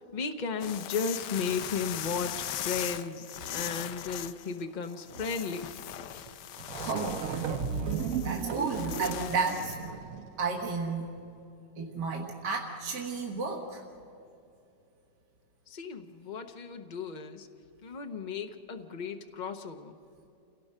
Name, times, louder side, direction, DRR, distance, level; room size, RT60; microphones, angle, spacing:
voice 1, 0.1-5.7 6.1-6.3 15.7-17.5 17.8-20.0, left 5 dB, 45° left, 6 dB, 0.6 m, -35 dB
sound 1, 0.6-9.8, left 12 dB, 80° left, 1.3 m, -40 dB
sound 2, 6.3-6.4 6.6-10.4, right 6 dB, 60° right, 1.1 m, -34 dB
voice 2, 6.8-7.4 8.2-9.8 10.4-11.1 11.8-13.8, right 4 dB, 75° right, 0 dB, 2.1 m, -32 dB
28.5 x 17.5 x 5.5 m, 2.7 s
omnidirectional pair, 1.8 m